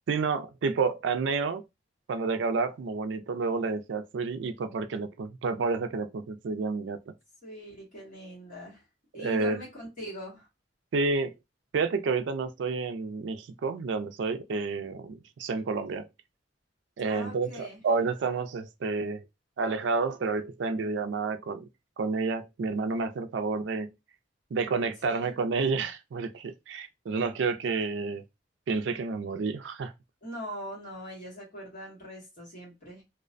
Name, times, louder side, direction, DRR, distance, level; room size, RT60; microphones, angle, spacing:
voice 1, 0.1-1.6 2.1-7.0 9.2-9.6 10.9-11.3 11.7-16.1 17.0-19.2 19.6-21.6 22.0-23.9 24.5-28.2 28.7-29.9, right 4 dB, 70° right, 0.4 m, -30 dB
voice 2, 7.4-8.8 9.1-10.5 17.1-17.8 25.1-25.3 30.2-33.0, equal, 45° left, 1.2 m, -41 dB
2.4 x 2.1 x 2.5 m
head